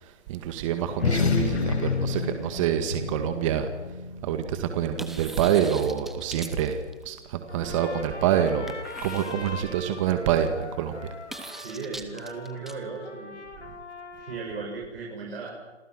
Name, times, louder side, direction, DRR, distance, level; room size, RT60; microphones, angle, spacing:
voice 1, 0.3-3.7 4.2-6.8 7.1-8.7 9.0-11.1, right 9 dB, 25° right, 7 dB, 2.0 m, -26 dB
sound 1, 0.9-5.7, left 5 dB, 65° left, 5.8 m, -29 dB
sound 2, 1.0-2.7 5.0-7.2 8.7-9.8 11.3-12.7, right 1 dB, ahead, 0.7 m, -43 dB
Trumpet, 7.5-14.8, left 3 dB, 85° left, 7.1 m, -42 dB
voice 2, 11.5-13.4 14.2-15.5, right 4 dB, 55° right, -1 dB, 7.6 m, -36 dB
28.0 x 27.5 x 6.3 m, 1.2 s
hypercardioid pair, 150°, 35 cm